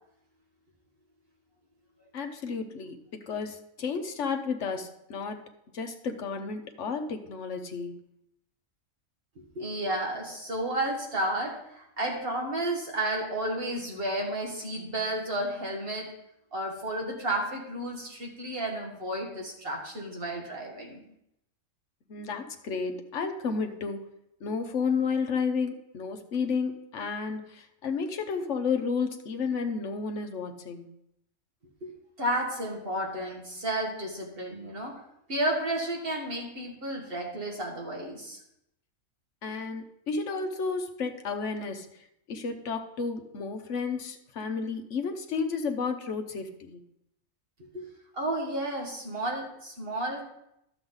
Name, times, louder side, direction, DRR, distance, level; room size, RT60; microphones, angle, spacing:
voice 1, 2.1-5.4 5.7-8.0 22.1-24.1 24.4-30.9 39.4-41.9 42.3-46.8, left 5 dB, 60° left, 5 dB, 1.2 m, -32 dB
voice 2, 9.6-16.1 16.5-21.0 31.8-35.0 35.3-38.4 47.7-47.9 48.1-50.2, right 1 dB, 40° right, -1 dB, 2.1 m, -32 dB
12.0 x 7.1 x 3.9 m, 0.79 s
omnidirectional pair, 1.5 m